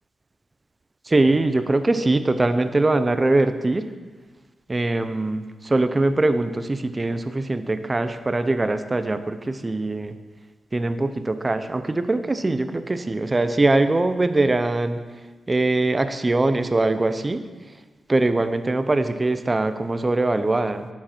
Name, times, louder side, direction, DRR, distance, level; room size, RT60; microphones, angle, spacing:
voice 1, 1.1-3.9 4.7-10.1 10.7-15.0 15.5-17.4 18.1-20.9, right 2 dB, 25° right, 10 dB, 0.7 m, -22 dB
10.0 x 7.5 x 4.5 m, 1.3 s
cardioid pair, 75°, 0 cm